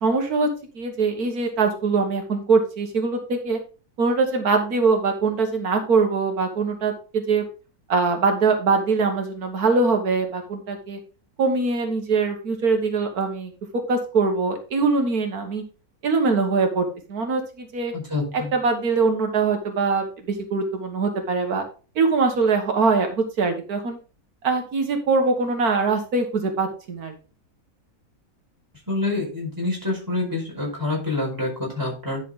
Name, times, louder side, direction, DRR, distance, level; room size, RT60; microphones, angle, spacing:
voice 1, 0.0-0.5 0.8-3.6 4.0-7.5 7.9-11.0 11.4-15.6 16.0-17.9 18.5-21.6 22.0-24.0 24.4-27.1, right 4 dB, 85° right, 4 dB, 1.9 m, -22 dB
voice 2, 17.9-18.5 28.9-32.2, left 2 dB, 10° right, -3 dB, 4.7 m, -27 dB
10.5 x 6.4 x 3.6 m, 0.34 s
omnidirectional pair, 1.6 m